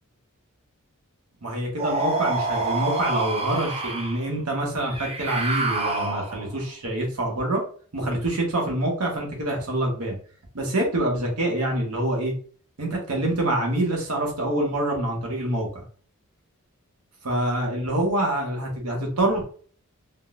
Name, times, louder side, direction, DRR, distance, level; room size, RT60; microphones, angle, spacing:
voice 1, 1.4-7.6 7.9-10.2 10.5-12.3 12.8-15.8 17.2-19.4, right 1 dB, 85° right, 0 dB, 1.1 m, -26 dB
sound 1, 1.8-4.2 4.9-6.6, right 3 dB, 25° right, 0.4 m, -27 dB
3.7 x 2.2 x 2.4 m, 0.44 s
head